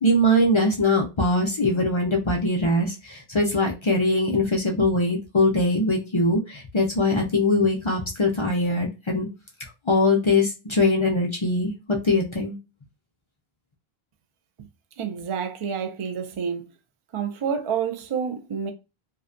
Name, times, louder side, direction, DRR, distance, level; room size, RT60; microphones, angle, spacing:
voice 1, 0.0-9.3 9.9-12.6, left 1 dB, 45° left, 0.4 m, -22 dB
voice 2, 15.0-16.6 17.1-18.7, right 7 dB, 50° right, 0.3 m, -28 dB
2.7 x 2.1 x 2.4 m
omnidirectional pair, 1.0 m